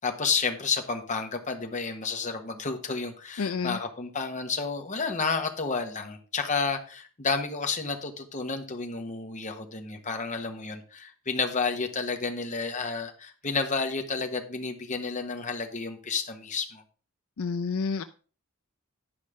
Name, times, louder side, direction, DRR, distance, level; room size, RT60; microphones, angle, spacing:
voice 1, 0.0-16.8, left 4 dB, 35° left, 4 dB, 1.3 m, -31 dB
voice 2, 3.4-3.8 17.4-18.0, left 5 dB, 70° left, 10 dB, 0.5 m, -29 dB
10.5 x 5.2 x 5.0 m, 0.39 s
head